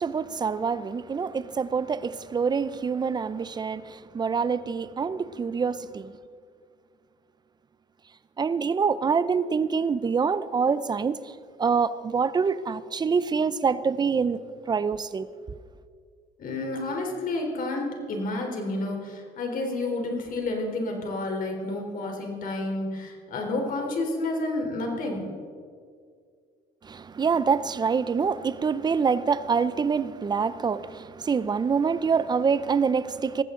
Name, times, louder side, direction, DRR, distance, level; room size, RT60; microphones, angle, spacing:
voice 1, 0.0-6.2 8.4-14.4 14.7-15.3 26.8-33.4, right 5 dB, 25° right, 0.6 m, -26 dB
voice 2, 16.4-25.3, left 2 dB, 55° left, 3.6 m, -30 dB
19.5 x 15.5 x 3.8 m
cardioid pair, 110°, 17 cm